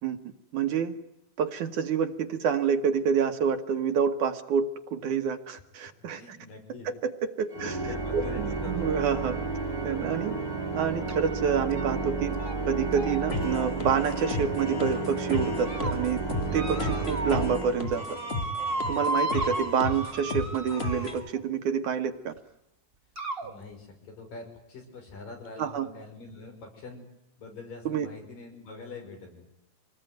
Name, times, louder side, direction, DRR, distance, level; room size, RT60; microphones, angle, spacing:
voice 1, 0.5-0.9 1.4-6.4 7.0-7.1 7.4-7.9 8.1-9.4 9.8-10.4 10.7-12.4 12.7-16.2 16.5-18.0 18.9-22.3 25.6-25.9 27.9-28.1, right 7 dB, 65° right, 7 dB, 2.6 m, -28 dB
voice 2, 6.1-6.9 7.8-8.9 23.4-27.0 27.4-29.4, left 3 dB, 70° left, 3 dB, 7.5 m, -44 dB
Organ, 7.5-18.3, right 3 dB, 10° left, 1.9 m, -32 dB
sound 1, 11.1-11.3 11.7-12.1 12.3-12.6 12.9-14.8 15.4-15.9 16.5-17.5 17.8-21.4 22.4-22.5 23.2-23.5, right 2 dB, 20° right, 2.2 m, -35 dB
sound 2, 13.3-21.3, left 3 dB, 25° left, 1.4 m, -35 dB
27.0 x 19.5 x 9.3 m, 0.85 s
omnidirectional pair, 4.0 m